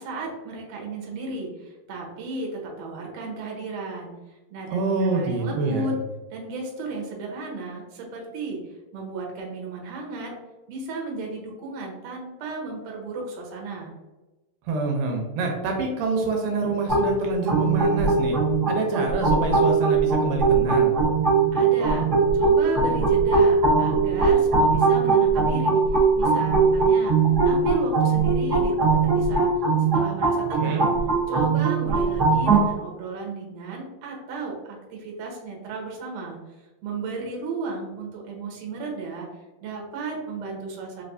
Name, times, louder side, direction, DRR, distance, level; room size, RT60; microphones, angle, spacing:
voice 1, 0.0-4.1 4.5-6.0 6.3-8.6 8.9-10.3 10.7-13.9 21.5-27.2 27.5-29.5 29.8-31.0 31.3-36.4 36.8-39.3 39.6-41.0, right 3 dB, 65° right, -1 dB, 1.8 m, -34 dB
voice 2, 4.7-5.9 14.7-18.4 18.7-21.0 30.6-30.9, right 3 dB, 85° right, 1 dB, 2.2 m, -26 dB
sound 1, 16.9-32.7, right 4 dB, 50° right, 1.2 m, -20 dB
4.7 x 3.2 x 2.6 m, 1.1 s
omnidirectional pair, 3.9 m